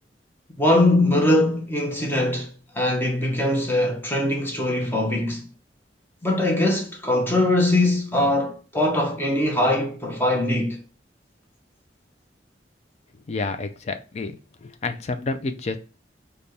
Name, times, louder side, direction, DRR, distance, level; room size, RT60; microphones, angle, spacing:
voice 1, 0.6-5.5 6.2-10.8, left 1 dB, 10° left, 0.8 m, -22 dB
voice 2, 13.3-14.4 14.6-15.8, left 3 dB, 40° left, 0.4 m, -29 dB
3.9 x 2.2 x 3.3 m
head